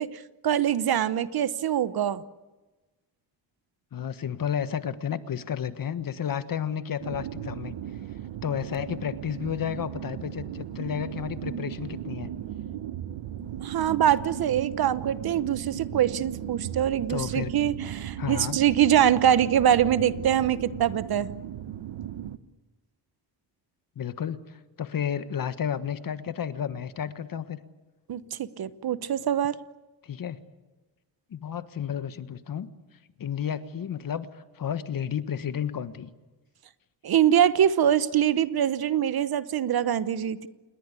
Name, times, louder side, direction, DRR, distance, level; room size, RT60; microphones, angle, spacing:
voice 1, 0.0-2.2 13.6-21.3 28.1-29.6 37.0-40.5, right 10 dB, 55° right, 15 dB, 1.0 m, -24 dB
voice 2, 3.9-7.8 8.4-12.3 17.1-17.5 18.2-18.6 23.9-27.6 30.0-30.4 31.3-32.7 33.2-36.1, left 8 dB, 50° left, 12 dB, 1.4 m, -32 dB
sound 1, 7.0-22.4, right 10 dB, 80° right, 1.3 m, -36 dB
28.0 x 21.0 x 8.4 m, 1.2 s
cardioid pair, 145°, 44 cm